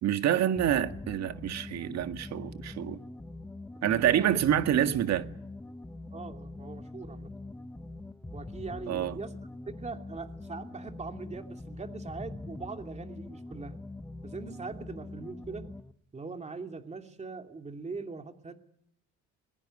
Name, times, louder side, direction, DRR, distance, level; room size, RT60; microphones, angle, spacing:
voice 1, 0.0-3.0 3.8-5.3 8.9-9.2, right 10 dB, 55° right, 1.9 m, -27 dB
sound 1, 0.6-15.9, left 2 dB, 5° left, 1.0 m, -43 dB
voice 2, 3.8-4.4 6.1-7.3 8.3-9.3 9.7-13.8 14.2-15.7 16.1-18.5, right 4 dB, 20° right, 2.8 m, -41 dB
21.5 x 21.5 x 9.7 m
cardioid pair, 130°, 31 cm